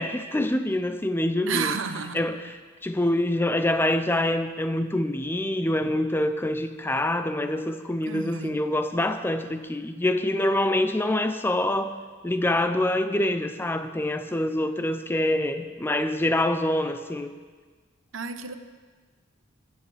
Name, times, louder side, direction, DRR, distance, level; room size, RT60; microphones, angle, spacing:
voice 1, 0.0-1.7 2.1-2.6 2.8-11.9 12.2-17.3, left 1 dB, 10° left, 9 dB, 0.4 m, -25 dB
voice 2, 1.5-2.2 8.1-8.6 18.1-18.5, right 6 dB, 75° right, 9 dB, 0.8 m, -31 dB
21.5 x 9.8 x 3.3 m, 1.4 s
head